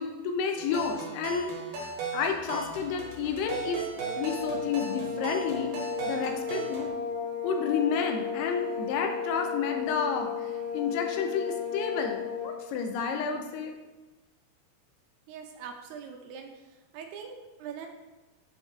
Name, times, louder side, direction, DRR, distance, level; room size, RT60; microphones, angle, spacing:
voice 1, 0.0-3.8 4.2-5.7 6.0-6.9 7.4-13.8, left 6 dB, 80° left, 4 dB, 2.7 m, -31 dB
sound 1, 0.6-6.9, right 4 dB, 60° right, 2.7 m, -37 dB
sound 2, 4.0-12.7, left 6 dB, 65° left, 2.0 m, -34 dB
voice 2, 15.3-16.5 16.9-17.9, right 7 dB, 85° right, 4 dB, 2.7 m, -42 dB
7.3 x 4.9 x 4.6 m, 1.1 s
omnidirectional pair, 4.7 m